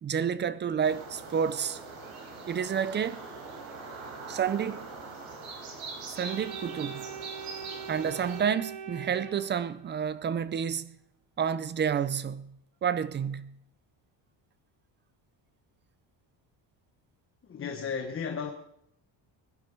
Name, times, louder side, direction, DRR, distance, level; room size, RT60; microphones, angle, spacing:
voice 1, 0.0-1.8 2.5-3.3 4.3-4.9 6.1-7.1 7.9-11.0 11.4-13.6, right 7 dB, 25° right, 0.5 m, -30 dB
sound 1, 0.8-8.4, right 4 dB, 85° right, 5.2 m, -42 dB
Organ, 6.1-10.1, right 7 dB, 70° right, 3.3 m, -42 dB
voice 2, 17.5-18.5, left 6 dB, 25° left, 1.2 m, -34 dB
21.0 x 11.5 x 5.3 m
cardioid pair, 165°, 47 cm